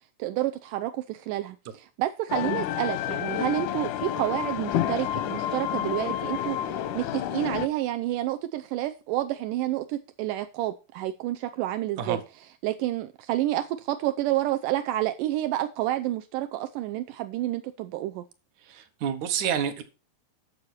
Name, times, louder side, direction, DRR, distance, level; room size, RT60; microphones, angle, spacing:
voice 1, 0.2-12.2 12.6-18.2, right 14 dB, 80° right, 1.9 m, -29 dB
sound 1, 2.3-7.7, left 11 dB, 80° left, 1.8 m, -29 dB
voice 2, 18.7-19.8, right 8 dB, 65° right, 2.2 m, -28 dB
11.5 x 6.7 x 4.3 m
omnidirectional pair, 4.3 m